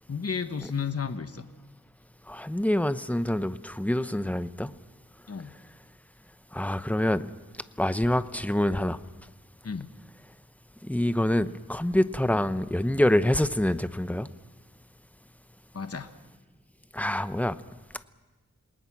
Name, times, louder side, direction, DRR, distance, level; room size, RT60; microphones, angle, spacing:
voice 1, 0.1-1.4 5.3-5.5 9.6-9.9 15.7-16.1, left 6 dB, 50° left, 8 dB, 1.2 m, -32 dB
voice 2, 2.3-4.7 6.5-7.3 7.8-9.0 10.8-14.3 16.9-17.6, left 1 dB, 5° left, 12 dB, 0.8 m, -26 dB
28.0 x 19.5 x 6.1 m, 1.2 s
wide cardioid pair, 70°, 31 cm